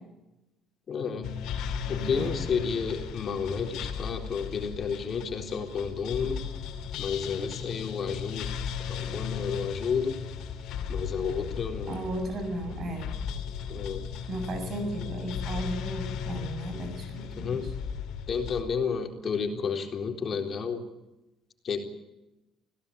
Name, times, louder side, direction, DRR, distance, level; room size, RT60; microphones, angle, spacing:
voice 1, 0.9-1.3 1.9-6.4 7.0-8.5 8.9-10.2 10.9-12.0 13.7-14.0 17.4-17.7 18.3-20.9 21.6-21.8, left 6 dB, 45° left, 3 dB, 3.9 m, -31 dB
sound 1, 1.2-18.6, left 7 dB, 75° left, 3.1 m, -36 dB
voice 2, 1.9-2.4 11.9-13.1 14.3-17.7, right 1 dB, 45° right, 7 dB, 7.2 m, -35 dB
25.0 x 17.0 x 8.7 m, 0.98 s
cardioid pair, 100°, 0 cm